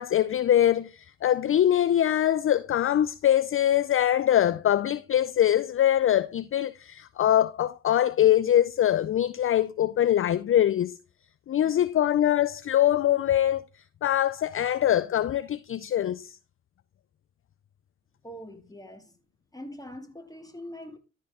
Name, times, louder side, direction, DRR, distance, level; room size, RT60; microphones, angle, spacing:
voice 1, 0.0-11.0 11.5-13.6 14.0-16.4, left 11 dB, 35° left, 0.4 m, -23 dB
voice 2, 18.2-19.2 19.5-21.0, equal, 10° left, 2.2 m, -43 dB
13.5 x 4.5 x 3.6 m
hypercardioid pair, 45°, 37 cm